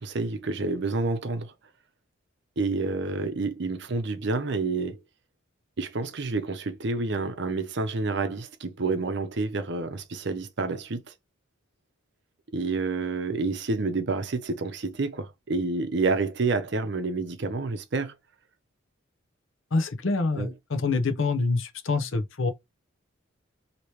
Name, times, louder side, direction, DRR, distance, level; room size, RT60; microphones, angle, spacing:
voice 1, 0.0-1.5 2.6-5.0 5.8-11.0 12.5-18.2 20.3-20.5, right 3 dB, 55° right, 0.6 m, -29 dB
voice 2, 19.7-22.5, left 3 dB, 70° left, 0.7 m, -26 dB
2.9 x 2.9 x 3.1 m
head